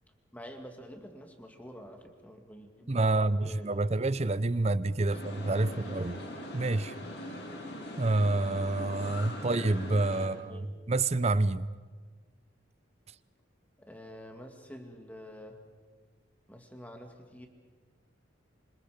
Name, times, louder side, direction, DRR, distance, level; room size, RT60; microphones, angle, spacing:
voice 1, 0.3-4.0 5.1-5.2 5.7-6.2 10.2-10.8 13.8-15.6 16.5-17.5, equal, 10° left, 4 dB, 2.3 m, -48 dB
voice 2, 2.9-6.2 6.5-6.9 8.0-11.7, right 2 dB, 30° right, 16 dB, 0.6 m, -28 dB
sound 1, 5.1-10.3, left 1 dB, 65° left, 6.0 m, -41 dB
26.5 x 26.0 x 5.2 m, 1.4 s
head